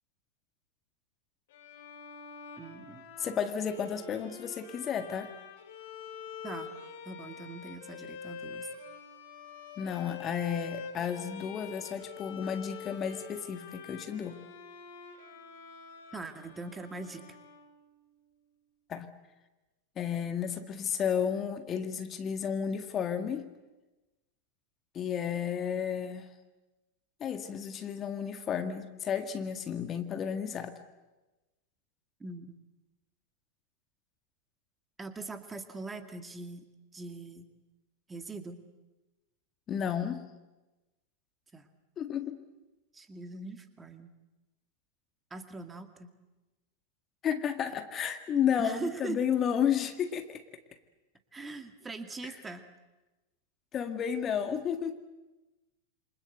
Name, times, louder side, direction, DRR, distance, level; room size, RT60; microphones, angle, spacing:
Bowed string instrument, 1.5-18.0, left 6 dB, 55° left, 4.1 m, -46 dB
voice 1, 2.6-3.1 6.4-6.7 7.0-8.7 16.1-17.4 32.2-32.6 35.0-36.7 36.9-37.5 38.1-38.6 41.5-41.7 42.9-44.1 45.3-46.1 48.6-49.2 51.3-52.7, right 3 dB, 15° right, 8 dB, 2.2 m, -41 dB
voice 2, 3.2-5.3 9.8-14.4 18.9-19.1 20.0-23.4 25.0-26.3 27.2-30.7 39.7-40.2 42.0-42.4 47.2-50.4 53.7-55.0, left 8 dB, 25° left, 8 dB, 1.7 m, -32 dB
28.0 x 26.0 x 8.1 m, 1.1 s
figure-of-eight pair, 90°, 0 cm